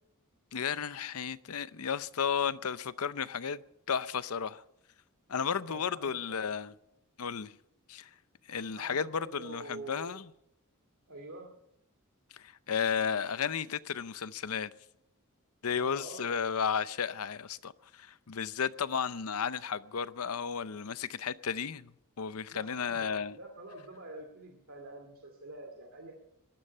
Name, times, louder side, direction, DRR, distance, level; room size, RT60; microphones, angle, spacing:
voice 1, 0.5-3.6 3.9-4.6 5.3-6.7 7.2-7.6 7.9-8.1 8.5-10.3 12.3-14.7 15.6-23.4, left 7 dB, 85° left, 0.7 m, -33 dB
voice 2, 5.6-6.4 8.7-10.1 11.1-11.5 15.7-16.3 22.5-26.1, right 2 dB, 70° right, 2.4 m, -46 dB
19.5 x 13.5 x 5.5 m
head